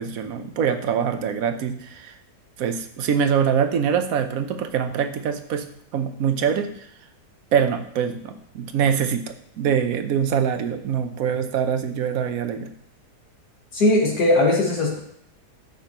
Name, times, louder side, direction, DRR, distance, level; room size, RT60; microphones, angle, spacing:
voice 1, 0.0-2.1 2.6-5.6 5.9-6.7 7.5-12.7, right 7 dB, 65° right, 9 dB, 1.1 m, -24 dB
voice 2, 13.7-15.0, left 2 dB, 75° left, -3 dB, 2.5 m, -19 dB
13.5 x 6.0 x 3.0 m, 0.68 s
omnidirectional pair, 1.7 m